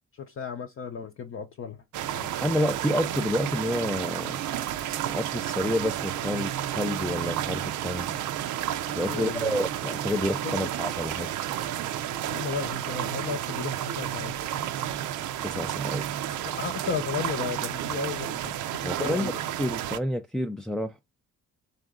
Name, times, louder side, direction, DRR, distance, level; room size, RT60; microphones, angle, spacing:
voice 1, 0.1-1.8 2.1-2.3 9.1-9.6 10.4-10.7 12.3-14.4 16.4-18.5 18.8-19.4, left 6 dB, 45° left, 0.6 m, -34 dB
sound 1, 1.9-20.0, right 11 dB, 80° right, 0.5 m, -31 dB
voice 2, 2.4-4.4 5.1-8.1 8.9-11.3 15.4-16.0 18.8-19.3 19.6-21.0, left 1 dB, ahead, 0.3 m, -29 dB
3.8 x 2.5 x 3.5 m
cardioid pair, 90°, 30 cm